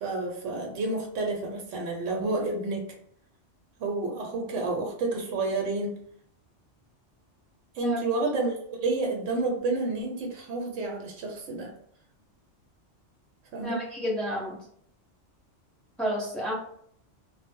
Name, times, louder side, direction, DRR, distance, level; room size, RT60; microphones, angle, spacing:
voice 1, 0.0-2.9 3.8-6.0 7.7-11.7 13.5-13.8, right 3 dB, 85° right, 1 dB, 0.9 m, -30 dB
voice 2, 13.6-14.6 16.0-16.5, equal, ahead, -5 dB, 0.6 m, -30 dB
2.0 x 2.0 x 3.4 m, 0.66 s
omnidirectional pair, 1.2 m